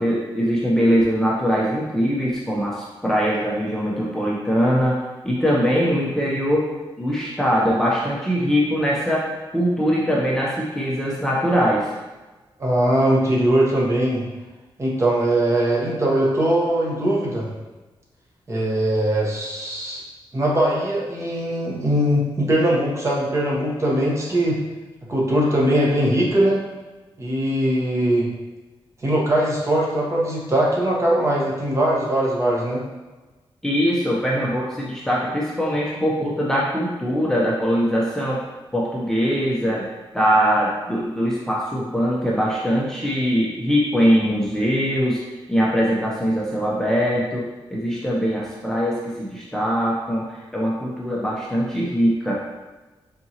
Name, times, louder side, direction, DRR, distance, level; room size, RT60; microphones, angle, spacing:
voice 1, 0.0-5.0 5.2-6.7 7.0-11.9 33.6-38.4 38.7-45.2 45.5-52.4, equal, 5° left, -5 dB, 0.6 m, -22 dB
voice 2, 12.6-14.2 14.8-17.5 18.5-20.0 20.3-24.6 25.1-26.6 27.2-28.3 29.0-32.8, right 1 dB, 30° right, -4 dB, 1.0 m, -21 dB
4.3 x 3.7 x 2.8 m, 1.2 s
wide cardioid pair, 120°, 9 cm